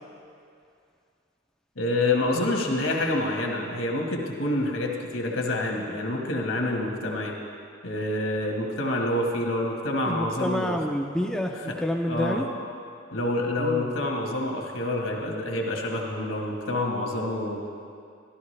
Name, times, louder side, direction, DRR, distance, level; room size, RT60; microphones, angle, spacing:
voice 1, 1.8-7.3 7.8-10.8 11.5-11.7 12.1-12.4 13.1-17.6, left 1 dB, 70° left, 0 dB, 1.4 m, -27 dB
voice 2, 10.0-12.4 13.6-13.9, left 1 dB, 5° left, 1 dB, 0.4 m, -28 dB
13.0 x 12.0 x 3.2 m, 2.4 s
head